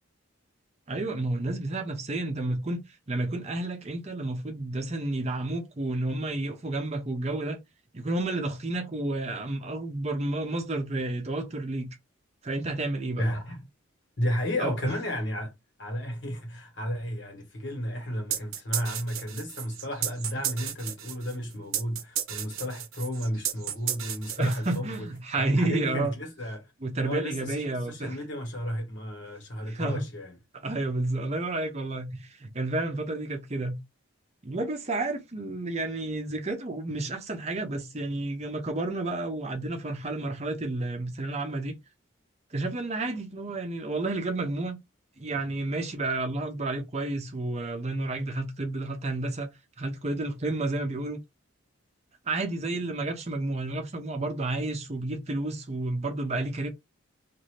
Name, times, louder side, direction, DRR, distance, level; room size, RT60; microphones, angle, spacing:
voice 1, 0.9-7.6 7.9-12.0 12.4-13.3 14.6-14.9 24.4-26.1 26.8-28.2 29.6-30.1 30.6-33.8 34.4-41.7 42.5-44.8 45.2-49.5 49.8-51.2 52.3-56.7, right 2 dB, 30° right, 0.6 m, -31 dB
voice 2, 13.2-13.6 14.2-15.5 15.8-25.1 25.4-26.7 27.0-30.3, equal, 60° left, 1.4 m, -33 dB
sound 1, 18.3-25.0, right 10 dB, 85° right, 0.6 m, -33 dB
2.6 x 2.5 x 3.1 m
head